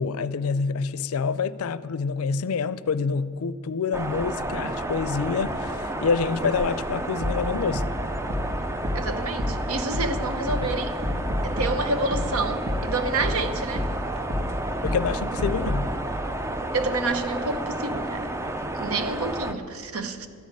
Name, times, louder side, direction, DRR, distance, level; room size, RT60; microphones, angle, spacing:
voice 1, 0.0-7.8 10.6-10.7 14.8-15.9, left 5 dB, 85° left, 0.4 m, -27 dB
sound 1, 3.9-19.5, right 1 dB, 15° right, 0.4 m, -31 dB
sound 2, 7.2-15.9, left 1 dB, 45° right, 1.7 m, -30 dB
voice 2, 8.9-10.9 11.4-13.9 16.7-18.3 18.7-20.3, right 3 dB, 80° right, 0.8 m, -28 dB
13.5 x 6.5 x 9.3 m
head